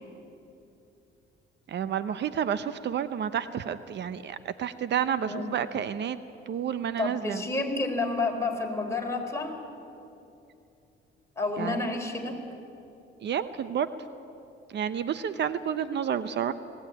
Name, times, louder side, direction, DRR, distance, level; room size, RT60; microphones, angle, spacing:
voice 1, 1.7-6.2 6.5-7.4 11.6-11.8 13.2-13.9 14.7-16.5, right 8 dB, 60° right, 12 dB, 0.7 m, -30 dB
voice 2, 7.0-9.6 11.4-12.4, left 3 dB, 15° left, 0 dB, 4.0 m, -30 dB
19.5 x 17.0 x 8.7 m, 2.7 s
cardioid pair, 90°, 20 cm